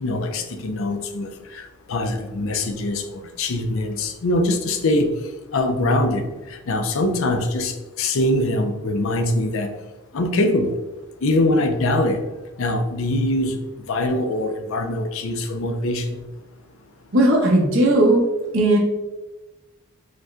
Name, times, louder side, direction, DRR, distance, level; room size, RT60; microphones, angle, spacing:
voice 1, 0.0-5.1 5.5-9.7 10.1-10.7 11.2-12.2 12.6-13.6 13.9-16.2, left 1 dB, 65° left, 6 dB, 0.5 m, -23 dB
voice 2, 17.1-18.2 18.5-18.8, right 1 dB, 65° right, -2 dB, 1.1 m, -16 dB
5.2 x 2.2 x 3.7 m, 1.1 s
head